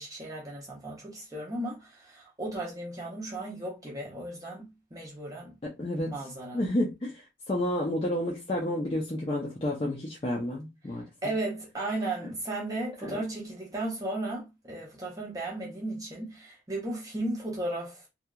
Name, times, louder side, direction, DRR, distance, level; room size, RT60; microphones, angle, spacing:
voice 1, 0.0-5.5 6.1-6.6 10.9-18.1, right 2 dB, 20° right, 0.6 m, -35 dB
voice 2, 5.6-6.1 6.5-11.0 13.0-13.1, left 1 dB, 30° left, 0.4 m, -30 dB
2.7 x 2.2 x 2.2 m
head